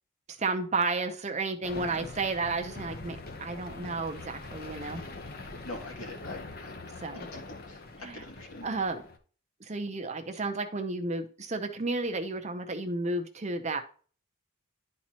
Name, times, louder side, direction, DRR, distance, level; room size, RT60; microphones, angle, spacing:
voice 1, 0.3-5.0 7.0-7.2 8.0-8.2 8.6-9.0 9.6-13.8, right 3 dB, 30° right, 6 dB, 0.7 m, -32 dB
sound 1, 1.6-9.2, left 2 dB, 45° left, 0.9 m, -43 dB
voice 2, 5.6-6.8 7.7-7.8 8.1-8.7 10.3-10.4, left 2 dB, 80° left, 1 dB, 2.4 m, -43 dB
11.5 x 4.3 x 2.9 m, 0.41 s
head